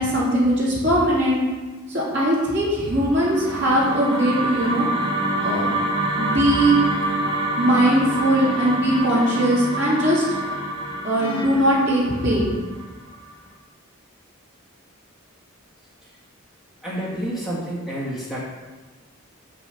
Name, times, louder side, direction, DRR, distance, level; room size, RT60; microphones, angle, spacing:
voice 1, 0.0-1.4 1.9-4.9 5.4-5.7 6.2-6.8 7.6-10.2 11.0-12.5, right 1 dB, 55° right, -6 dB, 2.9 m, -20 dB
sound 1, 2.9-13.2, right 1 dB, 25° right, 1.9 m, -27 dB
sound 2, 7.9-8.3 9.1-10.0 11.2-12.0, right 1 dB, 20° left, 1.2 m, -35 dB
voice 2, 16.8-18.4, right 1 dB, ahead, -8 dB, 1.7 m, -29 dB
6.4 x 5.3 x 6.9 m, 1.3 s
head